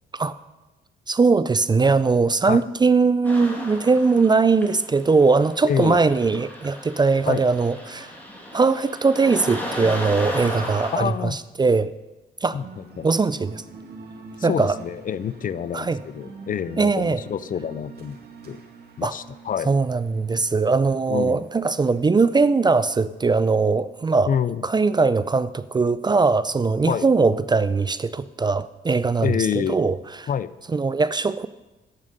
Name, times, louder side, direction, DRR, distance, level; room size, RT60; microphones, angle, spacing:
voice 1, 1.1-8.1 8.5-11.9 12.4-12.6 13.0-13.6 14.4-14.8 15.7-16.0 16.8-17.2 19.0-19.1 19.7-24.3 24.6-30.3 30.7-31.5, right 4 dB, 20° right, 15 dB, 0.4 m, -20 dB
sound 1, 3.2-11.0, equal, 10° left, 2.8 m, -35 dB
voice 2, 5.6-6.0 7.3-7.4 10.9-11.4 12.5-13.1 14.4-18.2 18.4-18.6 19.0-19.7 21.1-21.4 24.3-24.6 26.8-27.1 29.2-29.8 30.3-30.5, left 8 dB, 45° left, 16 dB, 0.5 m, -27 dB
sound 2, 12.6-22.1, right 3 dB, 55° right, 2.1 m, -45 dB
10.5 x 7.2 x 6.6 m, 1.1 s
cardioid pair, 90°, 20 cm